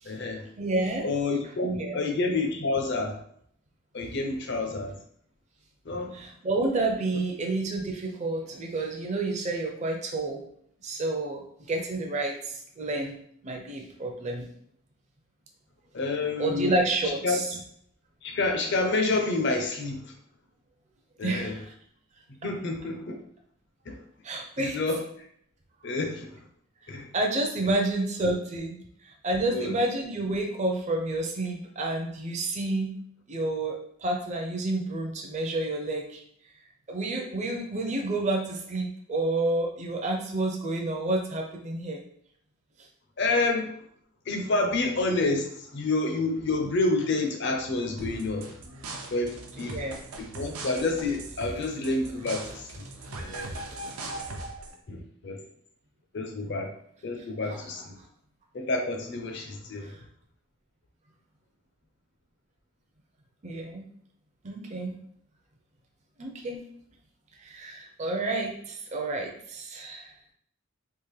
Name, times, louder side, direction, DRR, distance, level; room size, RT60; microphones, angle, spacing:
voice 1, 0.1-0.4 1.0-3.1 3.9-5.0 5.9-6.1 15.9-16.7 17.2-17.4 18.2-20.0 21.2-21.6 22.4-23.1 23.9-24.0 24.6-25.0 25.8-26.4 26.9-27.1 29.5-29.7 43.2-43.7 44.3-48.5 49.1-49.8 50.2-52.8 53.2-53.5 54.9-55.4 56.1-56.7 57.0-57.9 58.5-59.9, left 3 dB, 55° left, 3 dB, 0.6 m, -28 dB
voice 2, 0.6-1.1 1.8-2.0 6.1-10.4 10.8-13.1 13.4-14.5 16.4-17.5 21.2-21.7 24.2-24.8 27.1-32.9 33.3-36.2 36.9-42.0 49.6-50.0 51.6-51.7 52.4-52.5 53.4-53.6 57.5-57.6 59.8-60.0 63.4-63.8 64.4-65.0 66.2-66.6 67.4-70.1, right 2 dB, 35° right, 1 dB, 0.5 m, -30 dB
sound 1, 48.0-54.8, right 2 dB, 90° right, 0.6 m, -40 dB
3.6 x 2.4 x 3.2 m, 0.66 s
head